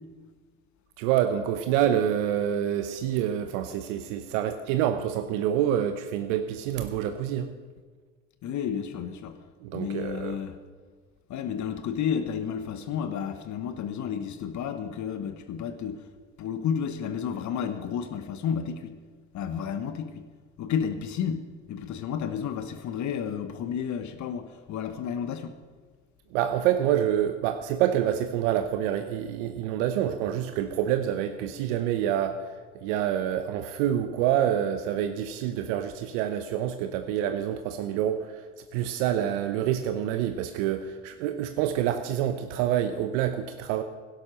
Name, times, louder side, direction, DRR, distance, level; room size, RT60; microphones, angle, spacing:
voice 1, 1.0-7.5 9.6-10.4 26.3-32.6 32.8-38.5 38.7-43.8, right 10 dB, 70° right, 0.9 m, -27 dB
voice 2, 8.4-9.4 9.7-10.6 11.3-16.0 16.4-18.9 19.3-20.3 20.6-25.5, left 7 dB, 50° left, 1.2 m, -31 dB
12.0 x 10.5 x 6.4 m
hypercardioid pair, 75°, 38 cm